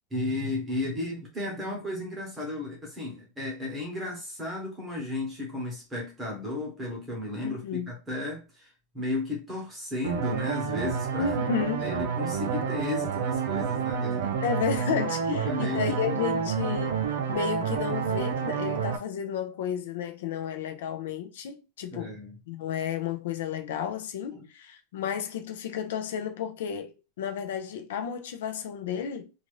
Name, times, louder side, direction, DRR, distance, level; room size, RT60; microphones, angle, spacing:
voice 1, 0.1-11.3 11.8-14.4 15.3-16.3 21.9-22.4 24.3-24.5, left 2 dB, 10° right, 1.0 m, -34 dB
voice 2, 7.4-7.9 11.2-11.9 14.4-22.2 22.5-29.3, left 8 dB, 70° left, 0.5 m, -32 dB
sound 1, 10.0-19.0, right 7 dB, 90° right, 0.6 m, -29 dB
2.5 x 2.4 x 3.2 m
supercardioid pair, 180°, 0 cm